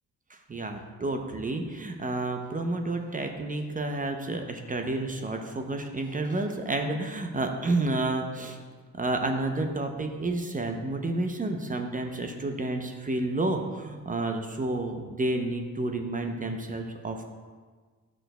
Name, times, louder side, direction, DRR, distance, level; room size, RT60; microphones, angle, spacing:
voice 1, 0.3-8.6 9.0-17.2, right 2 dB, 25° right, 5 dB, 0.6 m, -30 dB
9.0 x 6.1 x 2.3 m, 1.5 s
cardioid pair, 80°, 33 cm